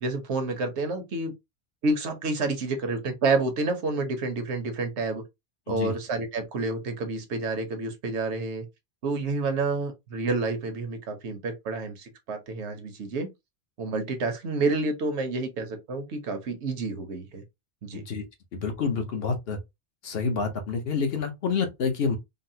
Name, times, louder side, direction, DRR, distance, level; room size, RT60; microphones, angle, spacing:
voice 1, 0.0-1.3 1.8-5.2 5.7-8.7 9.0-13.3 13.8-17.4 17.8-18.0, right 3 dB, 80° right, 1.1 m, -29 dB
voice 2, 17.9-18.2 18.5-19.6 20.0-22.2, left 5 dB, 65° left, 1.0 m, -28 dB
4.0 x 2.0 x 2.7 m
omnidirectional pair, 1.1 m